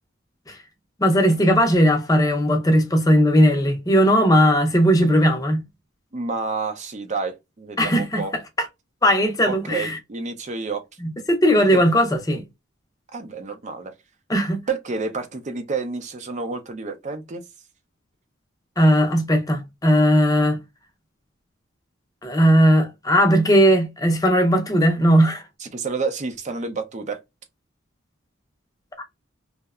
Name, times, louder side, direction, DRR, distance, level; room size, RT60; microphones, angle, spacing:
voice 1, 1.0-5.6 7.8-8.2 8.6-8.7 9.0-10.0 11.0-12.4 14.3-14.6 18.8-20.6 22.2-25.4 29.0-29.1, equal, 20° left, 0.5 m, -18 dB
voice 2, 6.1-8.3 9.4-10.8 11.7-11.8 13.1-13.9 14.7-17.4 25.6-27.2, right 4 dB, 35° right, 0.5 m, -29 dB
2.7 x 2.1 x 2.2 m
head